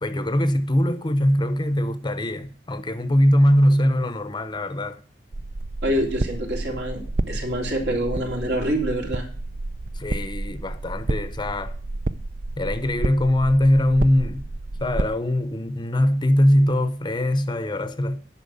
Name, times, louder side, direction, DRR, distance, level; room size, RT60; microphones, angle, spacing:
voice 1, 0.0-5.0 9.9-11.7 12.6-14.5 14.8-18.4, left 1 dB, 25° left, 0.8 m, -21 dB
sound 1, 5.3-15.1, right 2 dB, 50° right, 0.5 m, -30 dB
voice 2, 5.8-9.3, equal, 70° right, 3.2 m, -26 dB
10.5 x 5.9 x 6.9 m
head